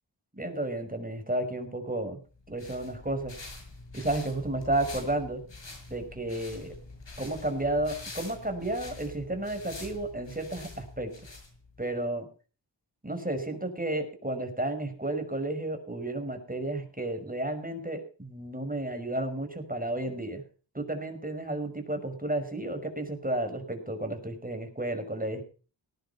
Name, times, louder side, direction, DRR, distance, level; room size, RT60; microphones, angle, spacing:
voice 1, 0.3-2.2 2.5-3.4 3.9-5.4 5.9-6.7 7.2-11.1 11.8-12.3 13.0-20.4 20.7-25.4, right 1 dB, 20° right, 6 dB, 5.8 m, -32 dB
sound 1, 2.4-11.9, left 3 dB, 80° left, 7.0 m, -45 dB
18.5 x 11.0 x 5.9 m, 0.38 s
wide cardioid pair, 45°, 43 cm